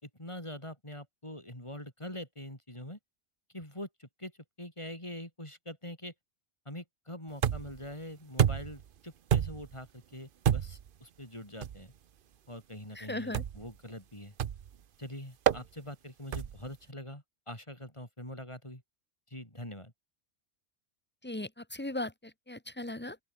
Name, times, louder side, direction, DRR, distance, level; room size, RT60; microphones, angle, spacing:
voice 1, 0.0-3.0 3.5-4.3 4.6-6.1 6.7-11.9 12.5-14.3 15.0-18.8 19.3-19.9, left 1 dB, 25° left, 6.0 m, -44 dB
sound 1, 7.4-7.8 8.4-8.8 9.3-9.7 10.4-10.9 11.6-11.8 13.3-13.7 14.4-14.7 15.5-15.7 16.3-16.7, right 9 dB, 55° right, 0.8 m, -28 dB
voice 2, 13.0-13.4 21.2-23.2, left 1 dB, 10° left, 1.7 m, -38 dB
open air
omnidirectional pair, 1.2 m